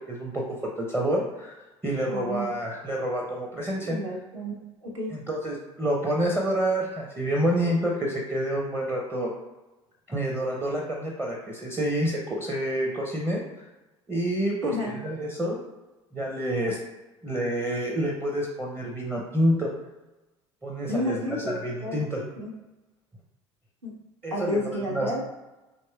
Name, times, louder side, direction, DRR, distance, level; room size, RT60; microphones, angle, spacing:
voice 1, 0.1-0.4 0.8-1.6 1.8-4.0 5.1-9.3 10.1-13.4 14.1-15.6 16.1-16.8 17.2-19.7 20.6-22.2 24.2-25.1, right 1 dB, 10° right, -1 dB, 0.6 m, -28 dB
voice 2, 2.1-2.5 3.8-4.6 4.8-5.1 14.6-14.9 20.9-22.0 22.4-22.5 23.8-23.9 24.3-25.2, left 1 dB, 80° right, -4 dB, 0.8 m, -31 dB
4.1 x 3.1 x 2.3 m, 1.1 s
figure-of-eight pair, 60°, 15 cm